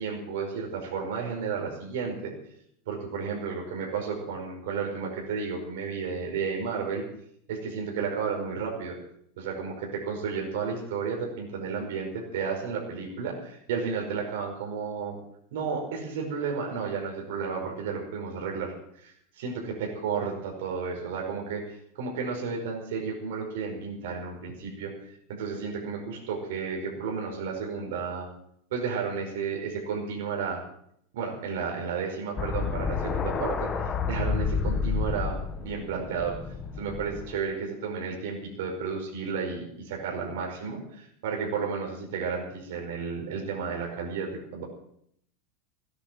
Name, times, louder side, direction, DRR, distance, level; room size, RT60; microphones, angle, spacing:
voice 1, 0.0-2.3 2.9-7.0 7.5-9.0 9.4-15.2 15.5-24.9 25.3-28.3 28.7-30.6 31.1-33.7 34.1-36.4 36.8-44.6, right 5 dB, 75° right, 0 dB, 5.1 m, -32 dB
sound 1, 32.4-37.4, left 5 dB, 20° left, 1.3 m, -30 dB
17.0 x 10.5 x 7.5 m, 0.70 s
supercardioid pair, 165°, 0 cm